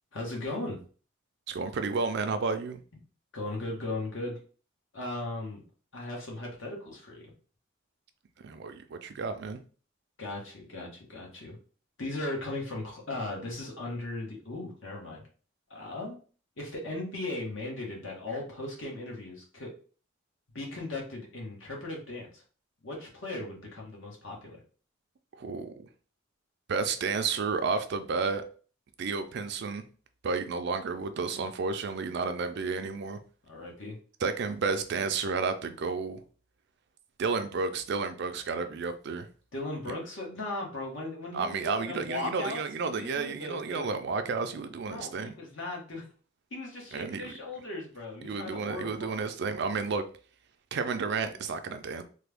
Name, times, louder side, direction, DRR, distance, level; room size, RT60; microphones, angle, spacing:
voice 1, 0.1-0.8 3.3-4.4 4.9-5.6 5.9-7.3 10.2-11.6 12.0-15.2 15.7-16.2 16.6-19.7 20.5-22.4 22.8-24.6 33.5-34.0 39.5-43.9 44.8-46.0 46.5-49.3, left 2 dB, 70° left, 1.3 m, -37 dB
voice 2, 1.5-2.8 8.4-9.6 25.4-25.9 26.7-28.4 29.0-29.8 30.2-33.2 34.2-36.2 37.2-39.3 41.3-45.3 46.9-47.3 48.2-50.0 50.7-52.0, right 4 dB, 55° right, 0.4 m, -31 dB
3.3 x 2.2 x 3.4 m
head